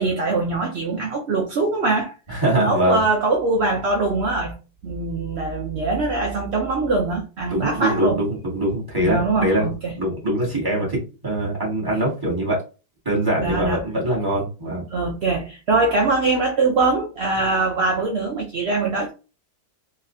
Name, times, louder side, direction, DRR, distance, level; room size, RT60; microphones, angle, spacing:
voice 1, 0.0-4.6 4.8-8.2 9.0-9.9 13.4-13.8 14.9-19.1, right 3 dB, 55° right, 0.7 m, -22 dB
voice 2, 2.3-3.0 7.5-9.7 10.0-12.6 13.0-14.8, right 1 dB, 15° right, 1.7 m, -23 dB
4.0 x 2.7 x 2.7 m
omnidirectional pair, 1.8 m